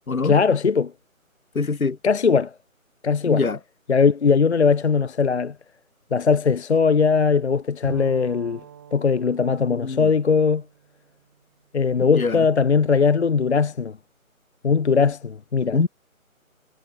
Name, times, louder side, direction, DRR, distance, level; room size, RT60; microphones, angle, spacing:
voice 1, 0.2-0.9 2.0-2.5 3.0-3.4 3.9-5.5 6.1-8.6 8.9-10.6 11.7-14.0 14.6-15.8, left 5 dB, 50° left, 0.5 m, -20 dB
voice 2, 1.6-2.0 3.3-3.6 9.7-10.1 12.0-12.4 15.7-15.9, left 4 dB, 75° left, 2.1 m, -23 dB
Bowed string instrument, 7.8-11.6, right 9 dB, 15° right, 1.5 m, -42 dB
figure-of-eight pair, 165°, 42 cm